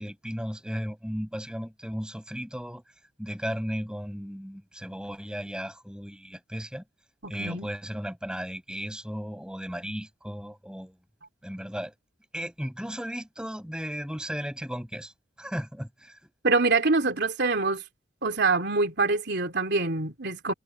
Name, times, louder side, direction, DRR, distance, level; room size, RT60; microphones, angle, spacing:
voice 1, 0.0-2.8 3.2-6.8 7.3-11.0 11.4-11.9 12.3-15.1 15.4-16.2, equal, 5° right, 7.4 m, -35 dB
voice 2, 7.2-7.7 16.4-17.8 18.2-20.5, right 3 dB, 60° right, 3.2 m, -25 dB
head